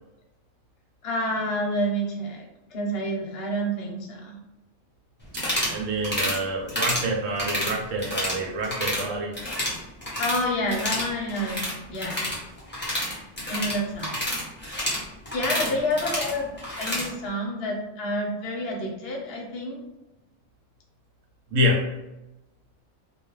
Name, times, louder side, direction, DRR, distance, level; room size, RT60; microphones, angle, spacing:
voice 1, 1.0-4.3 10.2-11.6 11.9-12.2 13.4-14.2 15.3-16.5 16.8-19.8, equal, 55° left, -1 dB, 0.8 m, -28 dB
sound 1, 5.3-5.8 6.0-6.4 6.7-7.1 7.4-8.4 8.6-9.0 9.3-10.4 10.7-17.1, left 1 dB, 10° left, 0.5 m, -29 dB
voice 2, 5.7-9.3 21.5-21.9, equal, 75° right, 1 dB, 0.9 m, -27 dB
2.3 x 2.3 x 3.0 m, 0.98 s
omnidirectional pair, 1.4 m